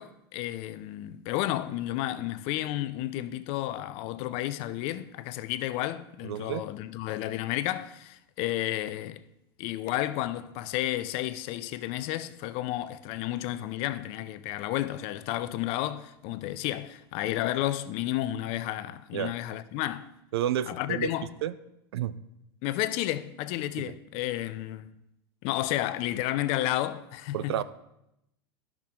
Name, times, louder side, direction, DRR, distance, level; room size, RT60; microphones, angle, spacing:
voice 1, 0.0-9.2 9.6-20.1 20.7-21.3 22.6-24.9 25.4-27.6, left 14 dB, 50° left, 0.5 m, -32 dB
voice 2, 6.2-6.7 19.1-19.3 20.3-21.1 21.4-21.5 21.9-22.1 23.8-24.0 27.3-27.6, right 11 dB, 80° right, 0.5 m, -30 dB
12.0 x 6.0 x 3.7 m
hypercardioid pair, 120°, 13 cm